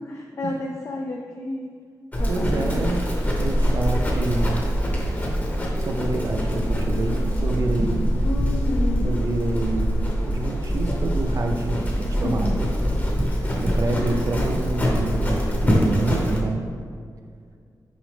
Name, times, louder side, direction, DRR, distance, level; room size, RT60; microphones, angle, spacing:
voice 1, 0.0-1.7 2.2-3.0 8.1-9.2 12.2-12.6 13.9-14.3, left 2 dB, 45° left, 0 dB, 0.4 m, -32 dB
Livestock farm animals working animals, 2.1-16.4, equal, 25° left, 0.9 m, -24 dB
voice 2, 2.3-4.6 5.8-8.1 9.0-12.7 13.6-16.7, right 2 dB, 50° right, 3 dB, 0.5 m, -28 dB
6.0 x 5.1 x 3.4 m, 2.1 s
wide cardioid pair, 150°, 7 cm